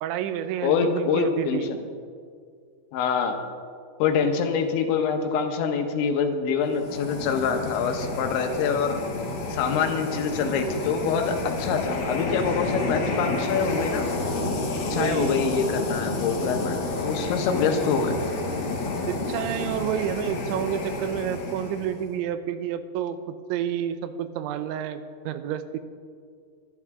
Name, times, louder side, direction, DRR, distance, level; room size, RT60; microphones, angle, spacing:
voice 1, 0.0-1.7 14.9-15.4 19.1-23.2 23.5-25.8, right 9 dB, 90° right, 11 dB, 3.1 m, -29 dB
voice 2, 0.6-1.8 2.9-3.4 4.0-9.0 9.5-14.1 14.9-18.2, left 6 dB, 85° left, 5 dB, 3.5 m, -25 dB
sound 1, 6.7-22.1, left 2 dB, 60° left, 3.7 m, -30 dB
22.0 x 12.0 x 3.6 m, 2.1 s
omnidirectional pair, 5.2 m